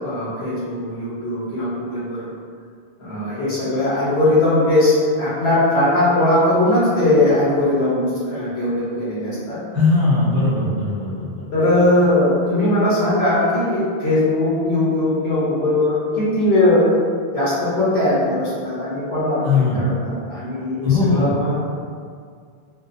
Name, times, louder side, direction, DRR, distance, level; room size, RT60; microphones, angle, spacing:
voice 1, 0.0-2.3 3.0-9.6 11.5-17.0 17.3-21.6, left 1 dB, 90° left, -9 dB, 1.1 m, -19 dB
voice 2, 9.7-11.4 19.4-20.0 20.8-21.3, left 3 dB, 20° right, -13 dB, 0.7 m, -19 dB
2.7 x 2.2 x 2.4 m, 2.1 s
omnidirectional pair, 1.0 m